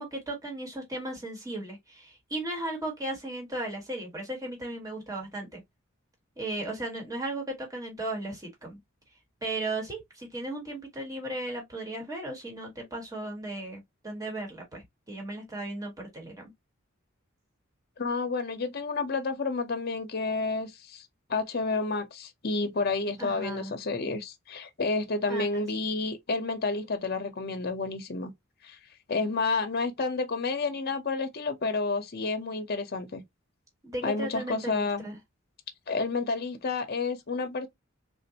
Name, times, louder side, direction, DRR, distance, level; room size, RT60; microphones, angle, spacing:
voice 1, 0.0-5.6 6.4-8.8 9.4-16.5 23.2-23.7 25.3-25.6 29.1-29.3 33.8-35.2, right 1 dB, 15° right, 1.5 m, -36 dB
voice 2, 18.0-28.3 28.6-28.8 29.1-33.2 34.0-35.1 35.9-37.7, left 3 dB, 50° left, 0.7 m, -30 dB
3.7 x 2.6 x 2.8 m
head